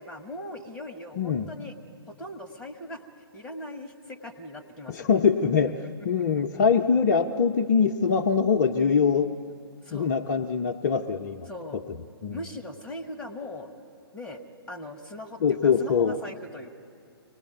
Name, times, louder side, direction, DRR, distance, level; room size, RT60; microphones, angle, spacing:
voice 1, 0.0-1.7 2.1-3.0 3.3-5.1 9.8-10.2 11.5-11.8 12.3-13.7 14.1-14.4 14.7-16.7, left 1 dB, 5° left, 5 dB, 1.4 m, -39 dB
voice 2, 1.2-1.5 4.9-9.3 9.9-11.5 12.2-12.4 15.4-16.2, left 6 dB, 40° left, 3 dB, 0.7 m, -23 dB
25.0 x 18.5 x 9.2 m, 2.4 s
figure-of-eight pair, 130°, 13 cm